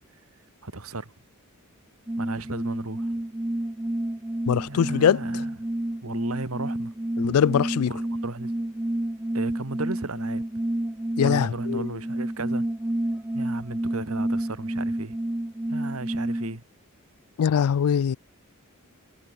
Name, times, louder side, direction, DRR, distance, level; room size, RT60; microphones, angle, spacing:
voice 1, 0.6-1.1 2.2-3.1 4.7-5.4 6.0-6.9 7.9-8.5 9.3-10.4 11.2-12.7 13.3-15.2 15.7-16.6, right 2 dB, 75° right, 1.8 m, -35 dB
sound 1, 2.1-16.6, right 1 dB, 10° right, 0.5 m, -30 dB
voice 2, 4.5-5.4 7.2-7.9 11.2-12.0 17.4-18.2, left 8 dB, 75° left, 0.4 m, -22 dB
head